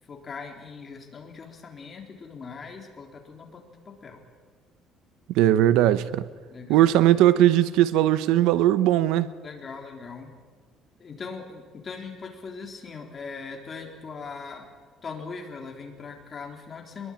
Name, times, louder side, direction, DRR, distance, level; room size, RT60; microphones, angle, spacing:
voice 1, 0.1-4.3 6.5-6.9 9.4-10.3 11.0-14.7 15.0-17.1, left 5 dB, 25° left, 3.7 m, -40 dB
voice 2, 5.3-6.3 6.7-9.3, right 13 dB, 85° right, 0.9 m, -19 dB
24.0 x 22.0 x 8.9 m
cardioid pair, 165°, 0 cm